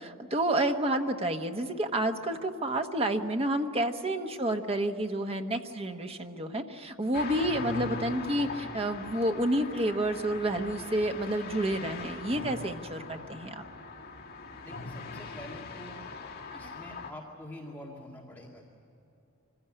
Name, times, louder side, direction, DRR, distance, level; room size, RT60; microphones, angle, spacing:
voice 1, 0.0-13.6 16.5-16.8, right 1 dB, 30° right, 5 dB, 1.2 m, -30 dB
sound 1, 7.1-17.1, left 4 dB, 50° left, 2.8 m, -41 dB
voice 2, 14.6-16.1 16.5-18.6, left 1 dB, 10° left, -3 dB, 2.1 m, -46 dB
25.0 x 16.0 x 9.8 m, 2.8 s
head